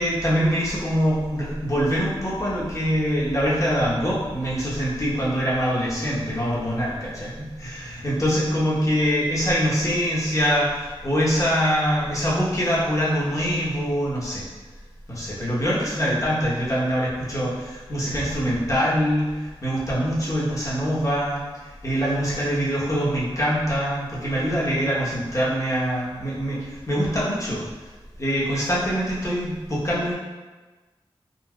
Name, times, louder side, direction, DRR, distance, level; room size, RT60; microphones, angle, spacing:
voice 1, 0.0-14.5 15.1-21.4 21.8-27.6 28.2-30.1, equal, 35° left, -7 dB, 1.0 m, -24 dB
3.9 x 2.7 x 2.3 m, 1.3 s
wide cardioid pair, 60°, 10 cm